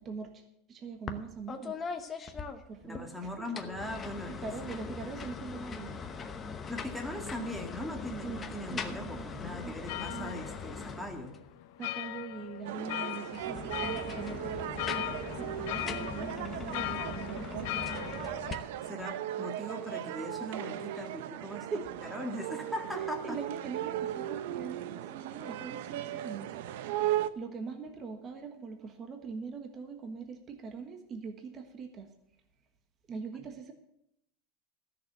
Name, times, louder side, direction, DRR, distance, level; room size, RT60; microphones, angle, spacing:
voice 1, 0.0-0.3 0.7-1.8 2.6-3.5 4.3-5.9 8.2-8.4 8.7-9.3 9.5-9.8 10.1-10.3 11.8-14.5 14.8-15.1 15.3-18.1 18.7-18.8 21.5-21.9 22.9-26.6 27.3-32.1 33.1-33.7, right 5 dB, 25° right, 5 dB, 1.3 m, -42 dB
sound 1, 1.1-1.2 1.5-3.0 3.4-11.5 13.3-18.5, left 5 dB, 20° left, 0.9 m, -41 dB
voice 2, 2.8-4.5 6.7-11.4 18.8-21.7 22.1-23.4, left 1 dB, ahead, 3 dB, 1.8 m, -40 dB
sound 2, 9.9-18.5, left 15 dB, 65° left, 0.7 m, -40 dB
sound 3, 12.6-27.3, right 13 dB, 70° right, 0.7 m, -37 dB
13.5 x 6.7 x 8.0 m, 0.79 s
supercardioid pair, 155°, 0 cm